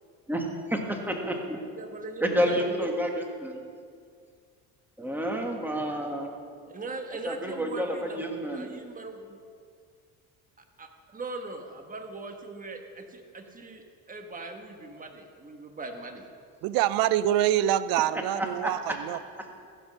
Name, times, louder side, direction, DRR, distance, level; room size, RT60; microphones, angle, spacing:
voice 1, 0.3-1.7 2.2-3.7 5.0-6.3 7.2-8.7 18.4-18.7, equal, 5° right, 2 dB, 1.7 m, -29 dB
voice 2, 1.6-2.9 6.7-9.4 10.8-16.3, right 3 dB, 25° right, 4 dB, 1.3 m, -40 dB
voice 3, 16.6-19.2, right 12 dB, 80° right, 16 dB, 0.5 m, -25 dB
15.0 x 5.4 x 6.2 m, 2.1 s
supercardioid pair, 90°, 35 cm